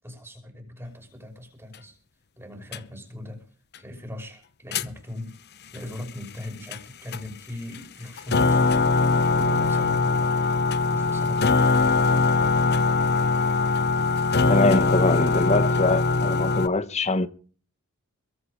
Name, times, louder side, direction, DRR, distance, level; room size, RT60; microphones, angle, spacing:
voice 1, 0.0-2.0 2.4-3.5 3.8-5.4 5.7-8.9 9.3-10.4 10.9-11.7, left 1 dB, 10° right, 5.7 m, -38 dB
sound 1, 2.7-2.8 4.7-4.9 6.7-6.8 7.1-7.2 7.7-7.8 8.2-16.7, left 3 dB, 50° left, 0.9 m, -21 dB
voice 2, 14.5-17.3, left 2 dB, 30° left, 1.3 m, -23 dB
22.5 x 7.9 x 5.1 m
head